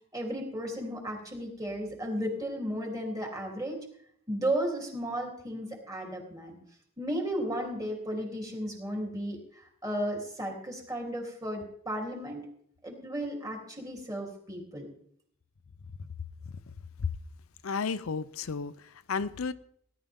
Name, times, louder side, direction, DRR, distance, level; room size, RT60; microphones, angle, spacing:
voice 1, 0.1-3.8 4.3-6.6 7.0-12.5 12.8-14.9, right 1 dB, 15° right, 3.4 m, -34 dB
voice 2, 17.6-19.5, left 5 dB, 70° left, 0.6 m, -33 dB
18.5 x 11.5 x 3.7 m
head